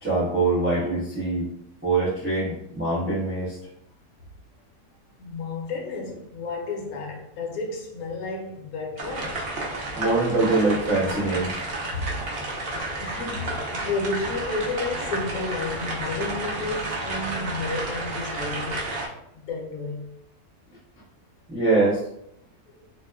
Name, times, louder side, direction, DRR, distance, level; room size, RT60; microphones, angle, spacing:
voice 1, 0.0-1.5 1.8-3.6 9.9-11.6 21.5-22.1, right 3 dB, 15° right, -8 dB, 0.4 m, -23 dB
voice 2, 5.2-9.5 11.9-12.1 12.6-18.9 19.3-20.1 22.7-22.9, left 3 dB, 75° left, 1 dB, 1.1 m, -32 dB
sound 1, 9.0-19.1, right 2 dB, 60° right, 0.6 m, -31 dB
2.8 x 2.2 x 2.2 m, 0.76 s
omnidirectional pair, 1.6 m